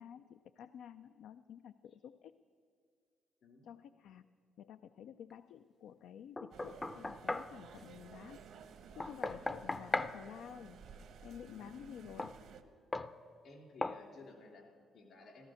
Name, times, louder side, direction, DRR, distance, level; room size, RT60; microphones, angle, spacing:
voice 1, 0.0-2.3 3.6-4.3 4.6-8.4 9.0-10.8 11.2-12.3, left 9 dB, 80° left, 11 dB, 0.3 m, -51 dB
Knock, 6.4-7.5 9.0-10.2 12.2-12.4 12.9-13.1 13.8-14.0, left 2 dB, 25° left, 0.5 m, -37 dB
sound 1, 6.5-12.6, right 6 dB, 75° right, 1.0 m, -55 dB
voice 2, 11.5-12.2 13.4-15.5, left 3 dB, 65° left, 2 dB, 3.2 m, -56 dB
14.5 x 13.5 x 6.4 m, 2.2 s
cardioid pair, 90°, 0 cm